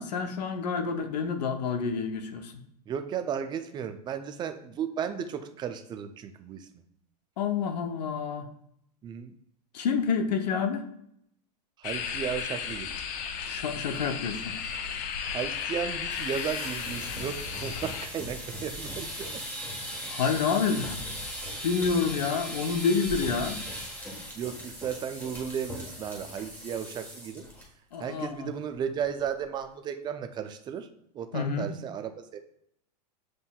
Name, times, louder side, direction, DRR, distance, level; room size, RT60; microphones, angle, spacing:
voice 1, 0.0-2.6 7.4-8.5 9.7-10.9 13.5-14.5 20.1-21.0 21.6-23.6 27.9-28.5 31.3-31.7, left 5 dB, 85° left, 8 dB, 0.7 m, -28 dB
voice 2, 2.9-6.8 9.0-9.3 11.8-12.9 15.3-19.4 24.3-27.5 28.0-30.9 31.1-32.4, right 8 dB, 20° right, 8 dB, 0.4 m, -34 dB
sound 1, 11.8-18.1, left 7 dB, 40° left, 0.5 m, -34 dB
sound 2, 16.0-27.6 27.9-28.2 28.5-28.6 29.0-29.4, equal, 10° left, 1.3 m, -38 dB
7.5 x 2.6 x 2.2 m, 0.74 s
hypercardioid pair, 120°, 21 cm